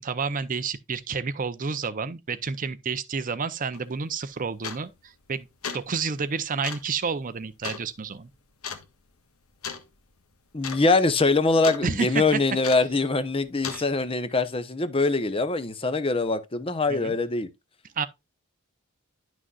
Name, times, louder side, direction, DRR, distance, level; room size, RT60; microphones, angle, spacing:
voice 1, 0.0-5.5 5.7-8.3 11.8-12.2 13.7-13.8 16.9-17.2 18.0-18.1, right 5 dB, 35° right, 0.6 m, -30 dB
sound 1, 3.7-3.9 4.6-5.0 5.5-5.9 6.6-6.9 7.6-7.9 8.6-8.9 9.6-9.9 10.2-10.3 10.6-10.8 11.1-11.8 12.6-13.0 13.6-13.9, left 6 dB, 75° left, 1.4 m, -35 dB
voice 2, 10.5-17.5, left 3 dB, 25° left, 0.7 m, -23 dB
11.0 x 6.2 x 2.4 m
head